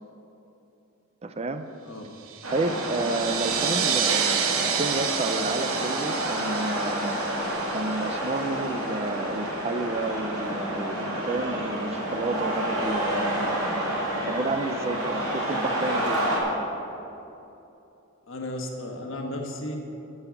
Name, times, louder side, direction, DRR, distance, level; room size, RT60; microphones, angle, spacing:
voice 1, 1.2-1.6 2.5-7.2 7.7-16.2, right 2 dB, 30° right, 9 dB, 0.4 m, -31 dB
sound 1, 2.3-8.5, right 7 dB, 70° right, 0.9 m, -29 dB
sound 2, 2.4-16.4, right 1 dB, 90° right, 2.5 m, -29 dB
voice 2, 18.3-19.8, left 1 dB, 60° left, 2 dB, 1.4 m, -34 dB
12.5 x 5.5 x 7.2 m, 2.9 s
head